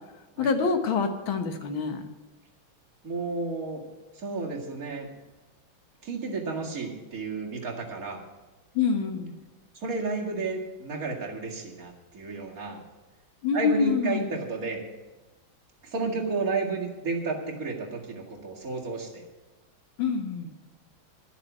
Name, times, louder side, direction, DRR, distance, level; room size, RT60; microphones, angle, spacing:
voice 1, 0.4-2.0 8.8-9.3 13.4-14.4 20.0-20.5, left 5 dB, 80° left, 7 dB, 2.0 m, -26 dB
voice 2, 3.0-3.8 4.1-5.1 6.0-8.2 9.7-12.8 13.5-14.8 15.8-19.2, right 3 dB, 45° right, -3 dB, 2.5 m, -32 dB
11.5 x 7.2 x 9.1 m, 1.2 s
omnidirectional pair, 2.2 m